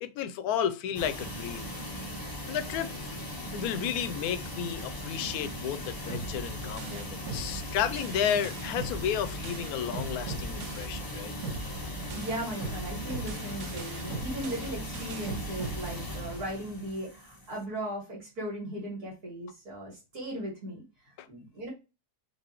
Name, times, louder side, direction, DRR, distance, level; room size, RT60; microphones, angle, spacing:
voice 1, 0.0-1.7 2.5-3.2 3.5-11.3 21.2-21.3, left 9 dB, 75° left, 1.0 m, -32 dB
sound 1, 0.9-17.6, left 1 dB, 30° left, 0.3 m, -39 dB
sound 2, 6.1-11.1 11.4-16.5, right 3 dB, 90° right, 1.3 m, -40 dB
voice 2, 12.1-20.8 21.3-21.7, right 1 dB, 70° right, 2.4 m, -37 dB
5.4 x 2.8 x 2.9 m
omnidirectional pair, 1.7 m